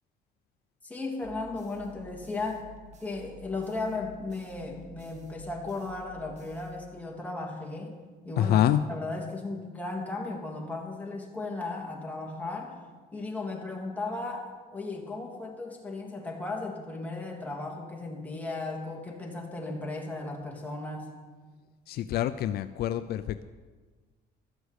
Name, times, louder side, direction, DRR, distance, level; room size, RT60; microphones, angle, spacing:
voice 1, 0.8-2.6 3.0-8.0 8.2-8.6 8.9-12.7 13.1-21.1, left 3 dB, 10° left, -1 dB, 2.9 m, -36 dB
sound 1, 1.2-7.3, right 2 dB, 45° right, 1.7 m, -52 dB
voice 2, 8.4-8.8 21.9-23.4, left 11 dB, 70° left, 12 dB, 0.5 m, -26 dB
13.0 x 8.0 x 8.2 m, 1.4 s
cardioid pair, 110°, 17 cm